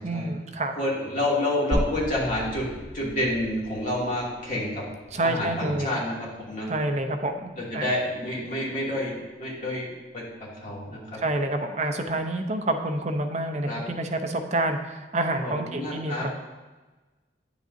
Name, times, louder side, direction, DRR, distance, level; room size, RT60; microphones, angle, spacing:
voice 1, 0.0-0.7 5.1-6.0 6.7-7.8 11.2-16.3, right 2 dB, 35° right, 5 dB, 0.7 m, -28 dB
voice 2, 0.8-2.7 2.9-4.8 5.2-6.7 7.6-11.2 13.6-13.8 15.4-16.3, left 1 dB, 45° left, -6 dB, 2.6 m, -29 dB
sound 1, 1.7-5.9 6.2-6.3 7.7-7.8, equal, 60° right, 2.9 m, -34 dB
9.9 x 7.9 x 2.7 m, 1.2 s
head